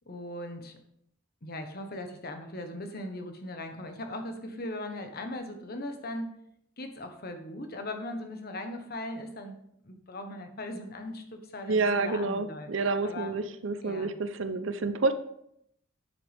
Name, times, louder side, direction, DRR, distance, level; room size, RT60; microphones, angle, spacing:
voice 1, 0.1-0.8 1.4-6.4 6.8-9.6 9.8-12.7 13.0-13.4 13.8-14.1, left 1 dB, 50° left, 6 dB, 1.3 m, -39 dB
voice 2, 11.7-15.1, right 3 dB, 80° right, 11 dB, 0.7 m, -29 dB
9.7 x 7.9 x 3.5 m, 0.74 s
head